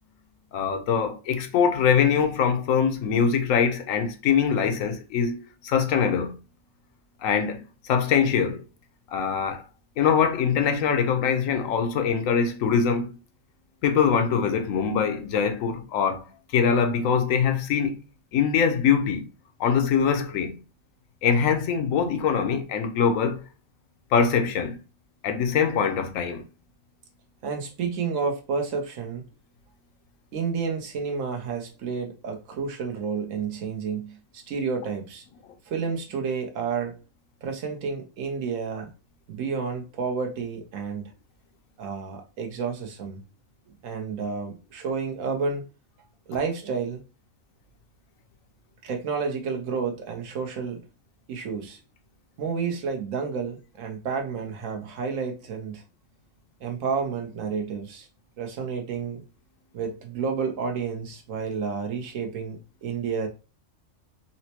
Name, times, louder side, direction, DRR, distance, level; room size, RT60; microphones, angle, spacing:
voice 1, 0.5-5.4 5.6-6.4 7.2-8.6 9.1-9.6 10.0-13.1 13.8-16.2 16.5-18.0 18.3-19.3 19.6-20.6 21.2-23.4 24.1-24.8 25.2-26.4, left 7 dB, 85° left, 1.1 m, -23 dB
voice 2, 27.4-29.2 30.3-35.2 35.7-37.0 37.4-38.9 39.3-41.1 41.8-43.2 43.7-45.6 46.3-47.0 48.8-50.8 51.3-51.8 52.4-55.8 56.6-58.1 58.4-59.2 59.7-63.3, right 5 dB, 85° right, 1.2 m, -30 dB
4.0 x 2.1 x 2.8 m
omnidirectional pair, 1.3 m